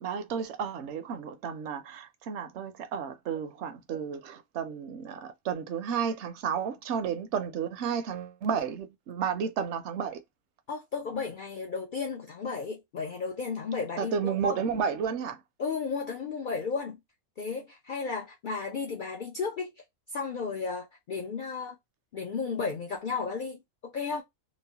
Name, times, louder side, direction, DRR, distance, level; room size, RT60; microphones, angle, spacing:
voice 1, 0.0-10.2 14.0-15.4, right 7 dB, 65° right, 0.8 m, -32 dB
voice 2, 10.7-14.6 15.6-17.0 17.4-19.7 20.1-21.8 22.1-24.2, left 5 dB, 75° left, 0.4 m, -34 dB
3.0 x 2.1 x 2.7 m
omnidirectional pair, 1.4 m